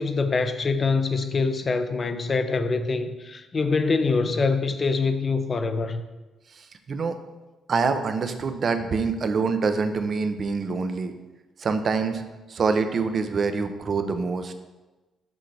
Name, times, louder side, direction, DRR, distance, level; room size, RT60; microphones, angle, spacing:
voice 1, 0.0-6.0, left 4 dB, 40° left, 9 dB, 0.5 m, -24 dB
voice 2, 6.5-7.2 7.7-11.1 11.6-12.2 12.5-14.5, right 4 dB, 50° right, 8 dB, 0.6 m, -25 dB
6.3 x 5.7 x 3.4 m, 1.1 s
cardioid pair, 90°, 0 cm